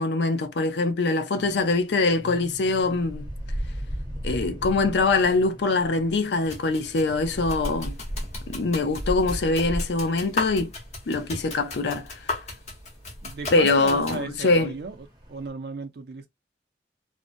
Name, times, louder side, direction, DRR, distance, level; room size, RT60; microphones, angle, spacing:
voice 1, 0.0-3.3 4.2-8.0 8.5-10.7 11.1-12.2 13.5-14.7, left 3 dB, 80° left, 0.5 m, -23 dB
sound 1, 1.4-15.5, equal, 25° right, 0.6 m, -37 dB
sound 2, 6.4-14.2, left 3 dB, 40° left, 0.9 m, -37 dB
voice 2, 13.2-15.0 15.3-16.3, right 4 dB, 65° right, 0.4 m, -35 dB
2.6 x 2.1 x 2.5 m
head